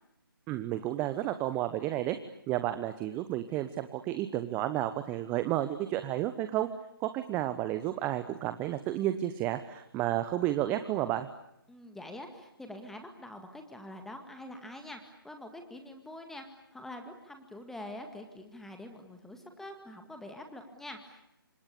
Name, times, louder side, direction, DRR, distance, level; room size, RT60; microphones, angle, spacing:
voice 1, 0.5-2.2 2.5-6.7 7.0-11.3, right 13 dB, 15° right, 11 dB, 1.0 m, -31 dB
voice 2, 11.7-21.2, left 1 dB, 5° left, 5 dB, 1.9 m, -45 dB
30.0 x 26.0 x 6.9 m, 0.81 s
figure-of-eight pair, 145°, 12 cm